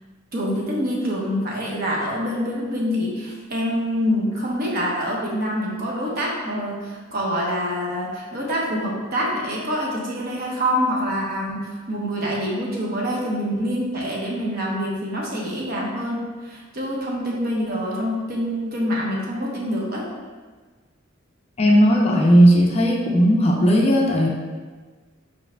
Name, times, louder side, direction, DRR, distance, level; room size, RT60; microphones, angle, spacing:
voice 1, 0.3-20.1, equal, 50° right, -3 dB, 0.9 m, -26 dB
voice 2, 21.6-24.3, equal, 30° left, -1 dB, 0.5 m, -16 dB
4.8 x 4.8 x 2.2 m, 1.4 s
head